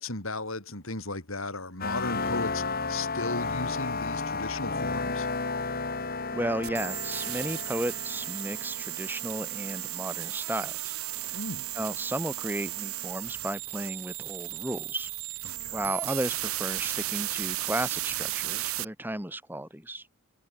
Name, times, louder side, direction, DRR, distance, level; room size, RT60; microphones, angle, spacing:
voice 1, 0.0-5.3 11.3-11.7 15.4-15.9, left 2 dB, 70° left, 5.9 m, -36 dB
sound 1, 1.8-10.4, left 3 dB, 45° left, 3.0 m, -33 dB
voice 2, 6.3-10.9 11.2-11.4 11.8-15.1 15.7-20.0, right 1 dB, 10° right, 1.9 m, -34 dB
sound 2, 6.6-18.8, right 16 dB, 80° right, 1.1 m, -34 dB
head